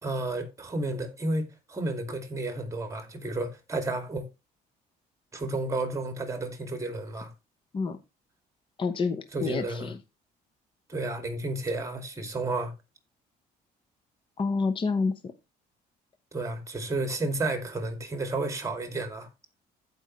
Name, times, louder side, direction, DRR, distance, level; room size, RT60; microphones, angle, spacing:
voice 1, 0.0-4.2 5.3-7.3 9.3-9.9 10.9-12.7 16.3-19.3, right 2 dB, 20° right, 2.4 m, -32 dB
voice 2, 8.8-10.0 14.4-15.3, left 4 dB, 30° left, 0.9 m, -28 dB
15.0 x 5.4 x 3.2 m
cardioid pair, 110°, 17 cm